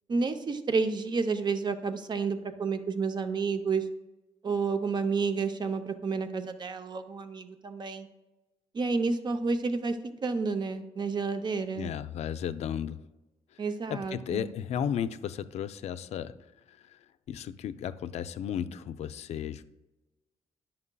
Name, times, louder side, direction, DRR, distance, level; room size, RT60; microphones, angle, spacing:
voice 1, 0.1-3.9 4.4-8.1 8.7-11.9 13.6-14.5, right 4 dB, 40° right, 9 dB, 0.6 m, -30 dB
voice 2, 11.7-13.0 13.9-16.3 16.7-17.0 17.3-19.6, left 9 dB, 70° left, 12 dB, 0.4 m, -34 dB
9.6 x 5.7 x 2.2 m, 1.1 s
cardioid pair, 95°, 12 cm